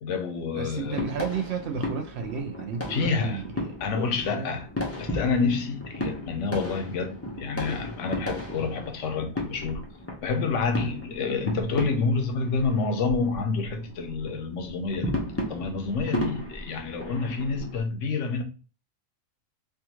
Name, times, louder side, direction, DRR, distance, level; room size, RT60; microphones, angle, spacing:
voice 1, 0.0-1.0 2.9-3.4 3.8-4.7 5.0-9.8 10.2-15.1 15.5-18.4, left 4 dB, 65° left, 0.9 m, -28 dB
voice 2, 0.5-3.7 4.3-4.5, right 6 dB, 65° right, 0.7 m, -32 dB
sound 1, 0.8-17.8, left 1 dB, 20° left, 0.4 m, -35 dB
3.5 x 2.3 x 2.9 m
omnidirectional pair, 1.5 m